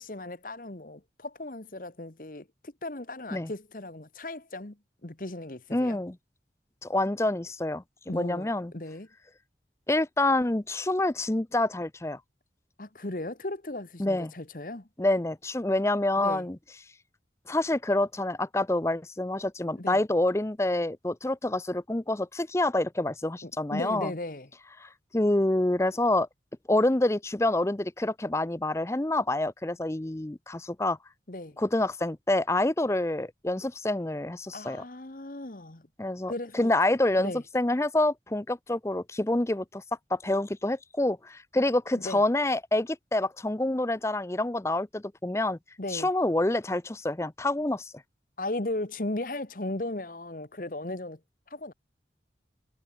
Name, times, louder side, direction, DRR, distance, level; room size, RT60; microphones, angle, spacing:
voice 1, 0.0-4.8 5.0-6.0 8.1-9.1 12.8-14.9 16.2-16.4 19.8-20.0 23.4-24.5 31.3-31.6 34.5-35.9 36.3-36.7 37.2-37.4 42.0-42.2 45.8-46.1 48.4-51.2 51.5-51.7, left 2 dB, 50° left, 1.4 m, -36 dB
voice 2, 5.7-6.2 6.8-7.8 8.1-8.7 9.9-12.2 14.0-14.3 15.0-16.6 17.5-24.1 24.8-26.3 26.7-31.0 31.6-34.8 36.0-39.8 40.1-45.6 45.9-47.9, left 1 dB, 15° left, 0.5 m, -27 dB
head